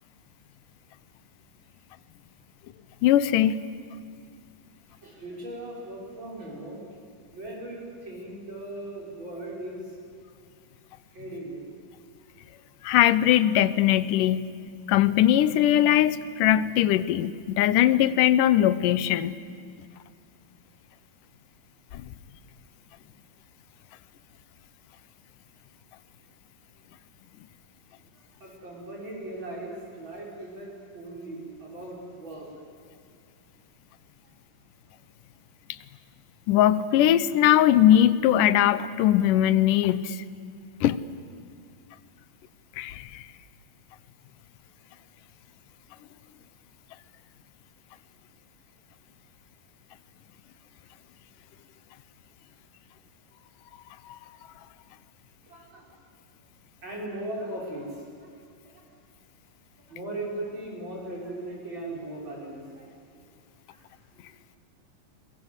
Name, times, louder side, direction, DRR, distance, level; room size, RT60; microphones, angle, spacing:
voice 1, 3.0-3.6 12.8-14.5 14.9-19.4 21.9-22.0 36.5-40.2 40.8-41.0 42.8-43.2, left 12 dB, 75° left, 16 dB, 2.3 m, -20 dB
voice 2, 4.9-6.9 7.3-10.0 11.0-11.6 28.1-32.5 55.5-55.9 56.8-58.3 58.6-58.8 59.9-62.9 63.7-63.9 64.1-64.3, right 1 dB, 35° right, -2 dB, 6.8 m, -38 dB
30.0 x 23.0 x 8.2 m, 2.2 s
omnidirectional pair, 4.0 m